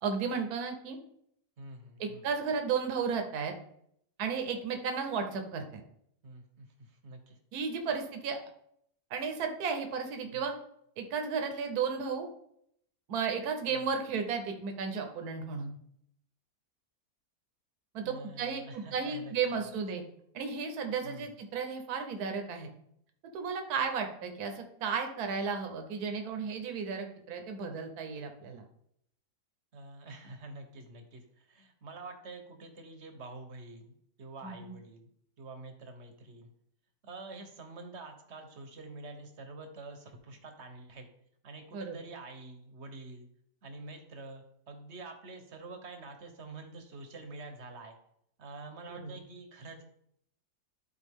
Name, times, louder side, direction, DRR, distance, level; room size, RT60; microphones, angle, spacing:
voice 1, 0.0-1.0 2.0-3.5 4.2-5.8 7.5-8.4 9.1-10.5 11.0-12.3 13.1-15.8 17.9-20.0 20.3-22.7 23.3-28.6 34.4-34.7 41.7-42.0 48.9-49.1, right 5 dB, 65° right, 5 dB, 1.4 m, -34 dB
voice 2, 1.6-2.2 6.2-7.4 10.3-10.4 13.7-13.8 18.0-19.3 21.0-21.3 29.7-35.1 35.4-36.5 37.0-41.1 41.4-43.3 43.6-48.0 48.4-49.8, right 2 dB, 45° right, 5 dB, 1.2 m, -47 dB
12.0 x 4.4 x 3.6 m, 0.72 s
omnidirectional pair, 1.8 m